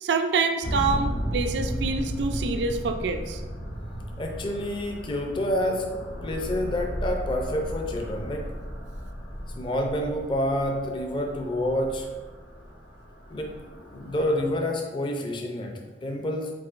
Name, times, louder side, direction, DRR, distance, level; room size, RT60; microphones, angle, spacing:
voice 1, 0.0-3.4, right 4 dB, 75° right, 7 dB, 0.3 m, -26 dB
sound 1, 0.6-14.6, equal, 90° left, 0.9 m, -35 dB
voice 2, 4.2-5.9 6.2-8.5 9.5-12.1 13.3-16.5, left 1 dB, 30° left, 2 dB, 0.4 m, -28 dB
4.7 x 4.2 x 2.5 m, 1.2 s
head